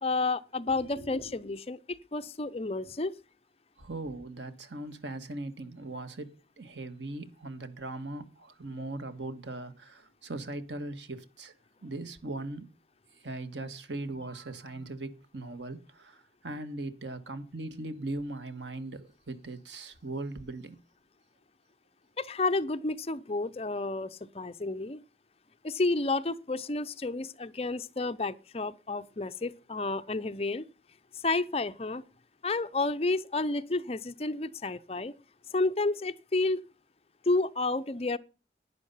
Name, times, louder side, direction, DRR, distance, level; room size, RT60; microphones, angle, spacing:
voice 1, 0.0-3.1 22.2-25.0 25.6-30.7 31.2-32.0 32.4-35.1 35.5-36.6 37.3-38.2, left 3 dB, 35° left, 0.6 m, -31 dB
voice 2, 0.6-1.4 2.8-2.9 3.8-11.5 11.8-12.7 13.2-20.8, right 2 dB, 90° right, 1.7 m, -39 dB
11.5 x 10.0 x 5.6 m
head